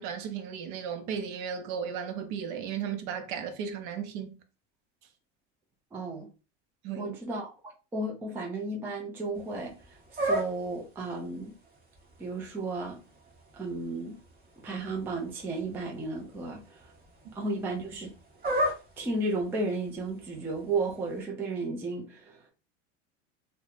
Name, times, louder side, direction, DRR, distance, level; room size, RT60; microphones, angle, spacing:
voice 1, 0.0-4.4 6.8-7.2 17.2-17.3, right 7 dB, 55° right, 0.6 m, -35 dB
voice 2, 5.9-6.3 7.0-9.8 10.2-11.5 12.2-13.0 13.5-14.2 14.6-16.8 17.4-18.1 19.0-22.4, right 2 dB, 5° right, 0.3 m, -33 dB
sound 1, 9.3-21.2, right 1 dB, 25° right, 0.8 m, -38 dB
2.0 x 2.0 x 2.9 m
supercardioid pair, 105°, 36 cm